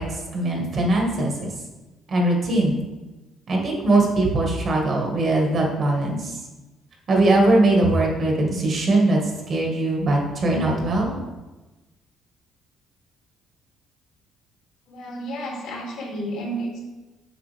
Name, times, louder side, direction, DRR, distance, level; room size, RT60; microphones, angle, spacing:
voice 1, 0.0-1.5 2.1-2.8 3.5-6.4 7.1-9.2 9.5-11.2, right 2 dB, 40° right, 0 dB, 1.6 m, -21 dB
voice 2, 14.9-16.8, right 1 dB, 75° left, -3 dB, 2.5 m, -31 dB
7.0 x 7.0 x 3.4 m, 1.1 s
cardioid pair, 145°, 0 cm